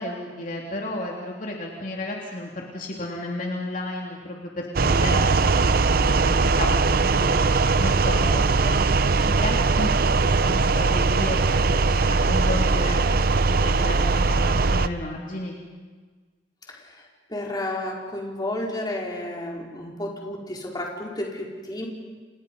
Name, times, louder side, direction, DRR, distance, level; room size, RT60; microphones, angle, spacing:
voice 1, 0.0-15.5, left 1 dB, 50° left, -1 dB, 3.2 m, -33 dB
sound 1, 4.8-14.9, right 3 dB, 55° right, 0.7 m, -20 dB
voice 2, 16.7-21.9, left 1 dB, 25° left, -1 dB, 4.7 m, -32 dB
30.0 x 29.5 x 5.5 m, 1.4 s
head